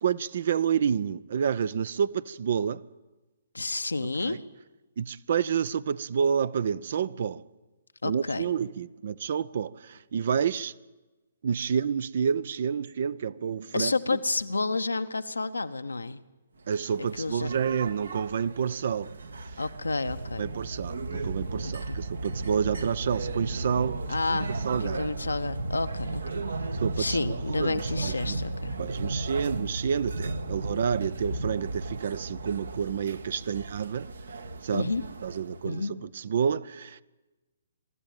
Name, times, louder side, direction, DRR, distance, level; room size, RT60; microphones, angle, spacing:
voice 1, 0.0-2.8 4.2-4.4 5.0-7.4 8.0-10.7 11.4-13.9 16.7-19.1 20.4-24.0 24.6-25.0 26.8-28.4 28.8-34.1 34.6-34.9 35.2-37.0, right 7 dB, 55° right, 0.6 m, -29 dB
voice 2, 3.5-4.4 8.0-8.4 13.7-16.2 17.2-17.5 19.6-20.4 21.6-22.0 24.1-24.5 24.8-26.2 27.0-28.8 34.7-35.0 35.6-36.0, left 3 dB, 80° left, 0.9 m, -30 dB
sound 1, 16.7-35.8, right 2 dB, 70° right, 1.5 m, -35 dB
23.5 x 12.5 x 9.1 m
figure-of-eight pair, 130°, 0 cm